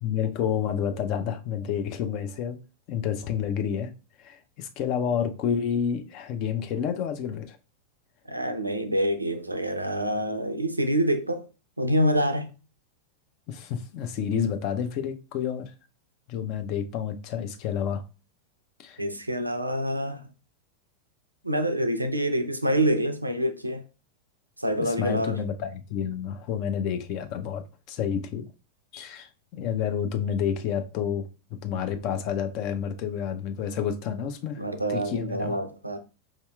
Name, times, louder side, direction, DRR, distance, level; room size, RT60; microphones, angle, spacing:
voice 1, 0.0-2.6 2.9-3.9 4.2-7.6 13.5-15.7 16.3-18.0 18.8-19.0 24.8-28.5 28.9-31.3 31.6-34.6 34.9-35.6, left 8 dB, 45° left, 0.5 m, -29 dB
voice 2, 8.3-11.4 11.8-12.5 19.0-20.2 21.4-23.8 24.6-25.4 34.6-36.0, right 1 dB, 85° right, 0.4 m, -26 dB
4.8 x 2.8 x 2.2 m
figure-of-eight pair, 90°, 0 cm